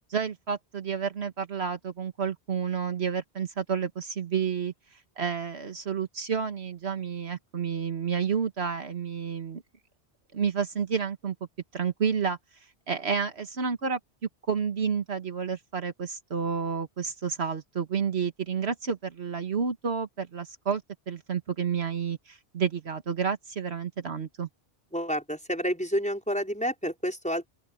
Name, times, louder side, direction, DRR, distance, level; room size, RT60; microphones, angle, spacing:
voice 1, 0.1-4.7 5.2-9.6 10.3-11.4 11.7-12.4 12.9-14.0 14.5-20.8 21.1-24.5, right 6 dB, 70° right, 1.7 m, -30 dB
voice 2, 24.9-27.5, equal, 5° left, 5.0 m, -29 dB
open air
omnidirectional pair, 1.1 m